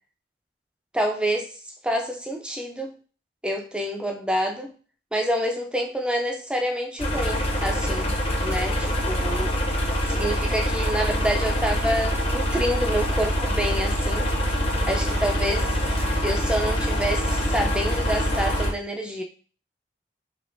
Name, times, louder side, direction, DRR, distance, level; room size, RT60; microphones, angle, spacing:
voice 1, 0.9-1.6 1.8-3.0 3.4-4.7 5.1-8.1 8.4-9.5 10.1-14.3 14.9-15.7 16.2-19.2, equal, 5° right, 2 dB, 0.4 m, -27 dB
sound 1, 7.0-18.7, equal, 30° left, 0.6 m, -24 dB
3.4 x 2.9 x 2.5 m, 0.39 s
head